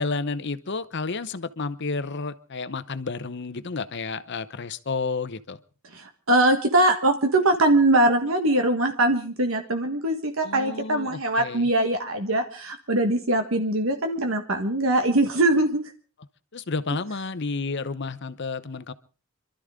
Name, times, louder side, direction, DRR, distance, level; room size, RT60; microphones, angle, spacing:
voice 1, 0.0-5.6 10.4-11.7 16.5-18.9, left 4 dB, 55° left, 13 dB, 0.9 m, -31 dB
voice 2, 5.9-15.8, right 1 dB, 70° right, 5 dB, 1.5 m, -22 dB
26.5 x 13.0 x 3.7 m, 0.38 s
head